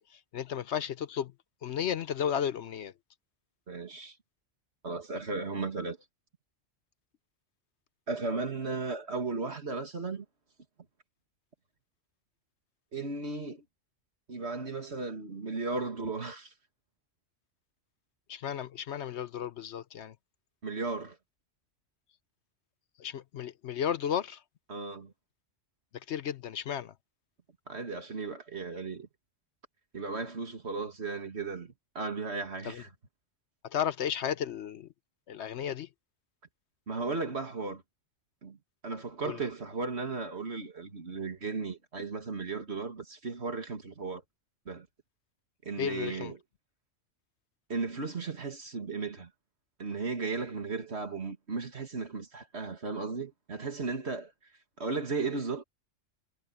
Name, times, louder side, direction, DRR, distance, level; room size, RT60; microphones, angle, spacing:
voice 1, 0.0-1.3 1.6-2.9 18.3-20.1 23.0-24.4 26.1-26.9 32.6-32.8 33.6-34.9 35.3-35.9 39.2-39.4 45.8-46.3, left 9 dB, 70° left, 1.0 m, -34 dB
voice 2, 3.7-4.2 4.8-6.0 8.1-10.3 12.9-13.6 14.3-16.5 20.6-21.2 24.7-25.1 27.7-29.1 29.9-32.9 36.9-37.8 38.4-44.2 44.7-44.9 45.6-46.4 47.7-49.3 49.8-54.3 54.8-55.6, right 4 dB, 60° right, 2.6 m, -35 dB
omnidirectional pair, 1.3 m